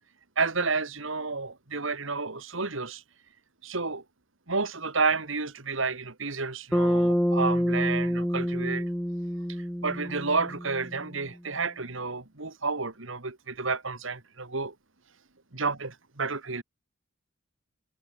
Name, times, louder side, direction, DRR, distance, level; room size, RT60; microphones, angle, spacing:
voice 1, 0.4-3.0 3.6-4.0 4.5-8.9 9.5-14.7 15.5-16.6, right 4 dB, 70° right, 2.3 m, -30 dB
Bass guitar, 6.7-11.1, equal, 5° left, 2.2 m, -27 dB
head